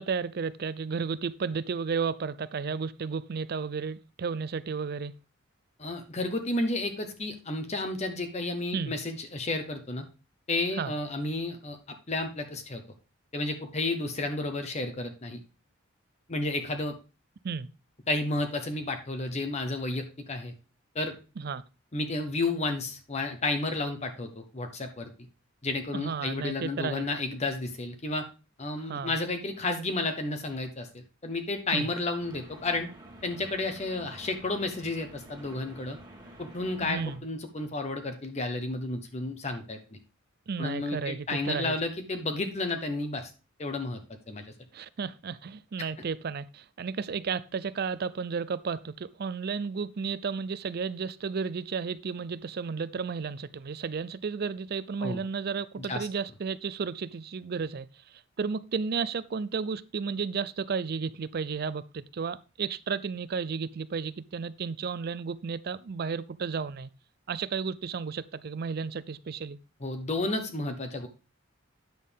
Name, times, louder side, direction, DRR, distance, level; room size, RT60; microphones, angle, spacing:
voice 1, 0.0-5.1 8.7-8.9 10.8-10.9 17.4-17.7 21.4-21.6 25.9-27.1 28.8-29.2 31.7-31.9 36.8-37.2 40.5-41.8 44.7-57.9 58.4-66.9 67.3-69.6, right 5 dB, 50° right, 0.4 m, -33 dB
voice 2, 5.8-10.0 10.5-11.8 12.1-12.8 13.3-15.4 16.3-16.9 18.1-20.5 20.9-21.2 21.9-25.1 25.6-28.2 28.6-32.9 33.2-36.0 36.4-39.8 40.6-43.3 43.6-44.0 44.3-44.4 55.0-55.2 55.8-56.1 69.8-71.1, left 2 dB, 35° left, 0.9 m, -32 dB
sound 1, 32.2-37.2, right 1 dB, 20° right, 1.6 m, -49 dB
9.3 x 6.5 x 3.4 m
head